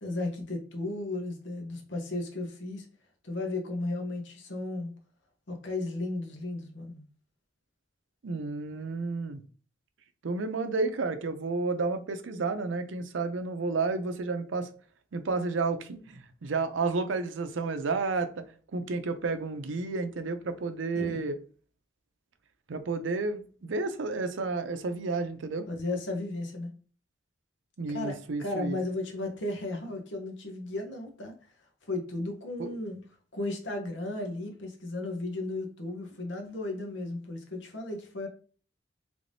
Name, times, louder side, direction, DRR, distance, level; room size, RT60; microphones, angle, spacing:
voice 1, 0.0-2.9 3.2-4.9 5.5-7.1 20.9-21.2 25.7-26.7 27.9-31.3 31.8-33.0 33.3-38.3, left 2 dB, 70° left, 0.8 m, -35 dB
voice 2, 8.2-9.4 10.2-14.7 15.1-18.5 18.7-21.4 22.7-25.7 27.8-28.8 32.6-32.7, right 3 dB, 85° right, 0.5 m, -31 dB
3.3 x 3.3 x 2.6 m
head